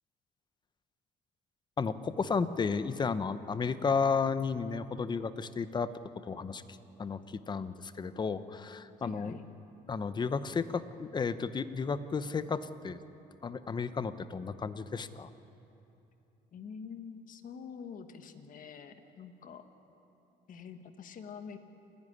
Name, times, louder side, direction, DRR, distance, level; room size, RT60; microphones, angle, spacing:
voice 1, 1.8-5.9 6.2-6.6 7.0-9.4 9.9-13.0 13.4-15.3, left 5 dB, 25° left, 13 dB, 0.8 m, -33 dB
voice 2, 9.0-9.4 16.5-19.7 20.5-21.6, left 6 dB, 55° left, 8 dB, 1.5 m, -46 dB
28.5 x 10.5 x 9.8 m, 2.9 s
cardioid pair, 110°, 17 cm